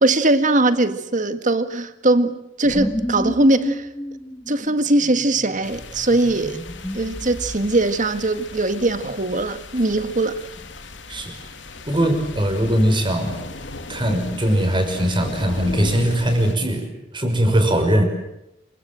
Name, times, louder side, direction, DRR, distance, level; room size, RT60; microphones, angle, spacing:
voice 1, 0.0-3.9 4.5-6.6 6.9-10.4, right 2 dB, 45° right, 1.8 m, -20 dB
sound 1, 2.6-7.8 10.5-11.3 11.5-11.9 14.4-15.8, equal, 15° left, 2.1 m, -32 dB
sound 2, 5.6-16.5, left 2 dB, 80° left, 2.9 m, -37 dB
voice 2, 11.8-13.5 13.9-18.0, equal, 25° right, 5.9 m, -20 dB
28.0 x 25.0 x 7.7 m
head